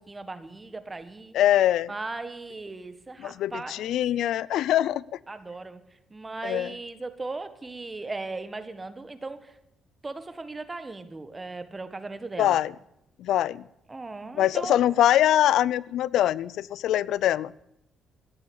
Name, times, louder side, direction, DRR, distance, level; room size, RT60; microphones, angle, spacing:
voice 1, 0.1-1.3 1.9-3.9 5.3-5.8 6.1-9.5 10.0-12.6 13.9-14.9, right 3 dB, 20° right, 10 dB, 1.6 m, -37 dB
voice 2, 1.3-1.9 3.2-5.0 6.4-6.7 12.4-12.7 13.2-13.6 14.4-17.5, left 12 dB, 80° left, 21 dB, 0.5 m, -23 dB
14.5 x 9.7 x 8.8 m, 0.81 s
cardioid pair, 90°, 0 cm